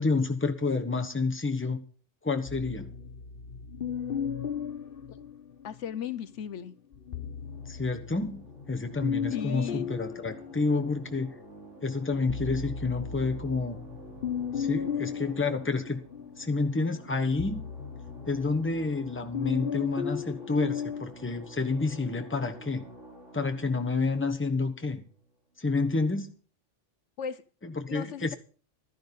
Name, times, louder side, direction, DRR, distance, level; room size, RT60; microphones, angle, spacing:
voice 1, 0.0-1.8 2.2-2.9 7.7-11.3 11.8-13.8 14.5-16.0 16.4-17.6 18.3-22.9 23.3-25.0 25.6-26.3 27.6-28.4, left 3 dB, 10° left, 1.1 m, -29 dB
sound 1, 2.5-6.0 6.9-11.4 11.8-21.1, left 7 dB, 55° left, 1.0 m, -36 dB
voice 2, 5.6-6.8 9.3-9.9 27.2-27.4 27.9-28.4, left 9 dB, 75° left, 1.1 m, -36 dB
sound 2, 7.4-25.6, right 2 dB, 80° right, 3.3 m, -50 dB
12.5 x 10.5 x 5.4 m
omnidirectional pair, 1.2 m